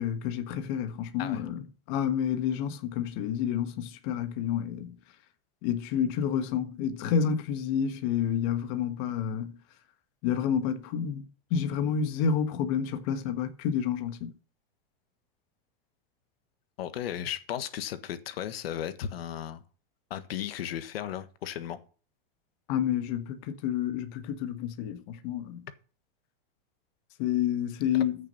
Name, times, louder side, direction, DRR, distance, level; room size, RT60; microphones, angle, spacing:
voice 1, 0.0-1.6 1.9-4.9 5.6-9.5 10.2-11.2 11.5-14.3 22.7-25.6 27.2-28.2, left 8 dB, 40° left, 1.5 m, -29 dB
voice 2, 16.8-19.6 20.1-21.8 27.9-28.0, left 10 dB, 85° left, 1.5 m, -35 dB
14.5 x 6.6 x 5.5 m
supercardioid pair, 170°, 29 cm